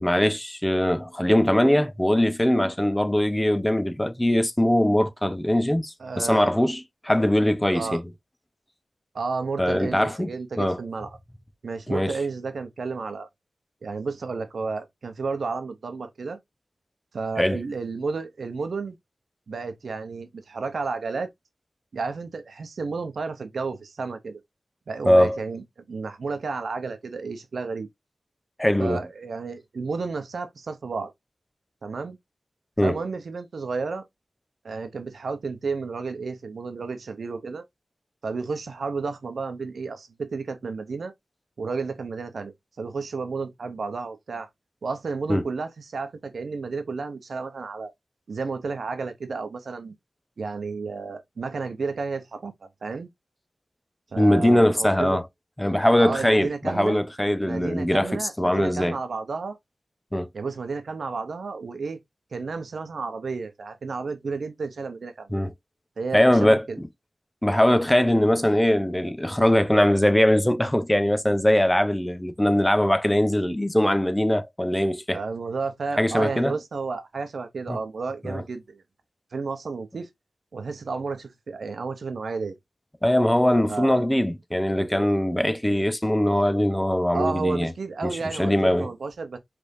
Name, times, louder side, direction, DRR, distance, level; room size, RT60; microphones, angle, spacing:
voice 1, 0.0-8.0 9.6-10.8 11.9-12.2 17.4-17.6 25.0-25.4 28.6-29.0 32.8-33.0 45.3-45.4 54.2-55.2 55.6-59.0 60.1-60.3 65.3-65.5 66.1-66.9 67.4-75.2 76.0-76.5 77.7-77.8 78.2-78.4 83.0-87.7 88.0-88.9, left 1 dB, 10° left, 0.6 m, -21 dB
voice 2, 6.0-6.5 7.7-8.0 9.1-11.1 11.6-13.3 13.8-16.4 17.1-19.0 19.5-21.3 21.9-24.4 24.9-27.9 28.8-31.1 31.8-32.2 32.8-34.1 34.6-37.6 38.2-41.1 41.6-44.5 44.8-47.9 48.3-50.0 50.4-53.1 54.1-55.2 56.0-57.0 57.4-59.6 60.3-62.0 62.3-65.3 66.0-66.8 75.1-78.8 79.3-80.1 80.5-82.5 83.7-84.0 87.1-89.4, right 4 dB, 90° right, 0.8 m, -32 dB
5.1 x 3.4 x 2.6 m
wide cardioid pair, 95°, 0 cm